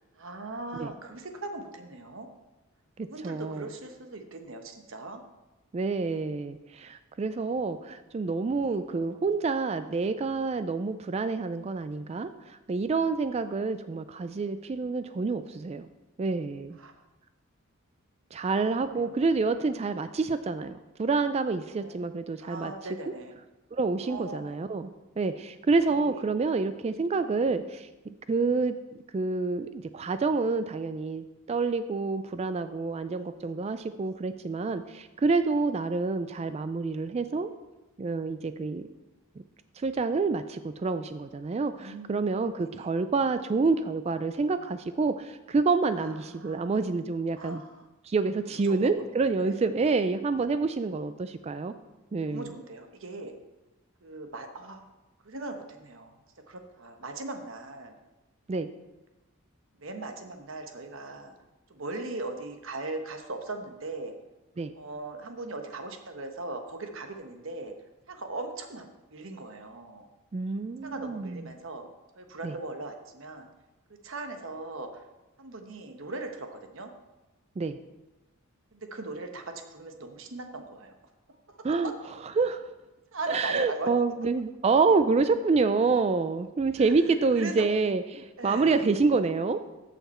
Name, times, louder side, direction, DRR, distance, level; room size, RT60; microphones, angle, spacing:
voice 1, 0.1-2.3 3.0-5.2 8.6-8.8 16.8-16.9 18.9-19.0 21.7-22.1 22.4-23.4 24.0-24.6 25.8-26.2 41.8-42.3 42.6-42.9 46.0-46.8 47.3-47.8 48.5-49.1 49.4-49.6 52.2-53.3 54.0-54.8 55.2-56.1 56.5-58.0 59.8-61.3 61.7-64.1 64.7-67.7 68.1-70.1 70.8-71.9 72.1-73.5 74.0-75.0 75.4-76.9 78.7-80.9 81.5-81.6 81.8-81.9 83.1-83.9 86.8-86.9 87.3-87.6 88.4-88.8, right 2 dB, 70° right, 5 dB, 1.1 m, -39 dB
voice 2, 3.0-3.7 5.7-15.9 16.2-16.8 18.3-22.7 23.7-28.8 29.1-37.5 38.0-38.9 39.8-47.6 48.0-51.7 52.1-52.5 58.5-58.7 64.6-64.7 70.3-71.4 72.4-72.5 77.6-77.8 81.6-81.9 82.4-82.6 83.3-89.6, right 4 dB, 30° right, 11 dB, 0.3 m, -28 dB
14.0 x 5.8 x 4.3 m, 1.1 s
head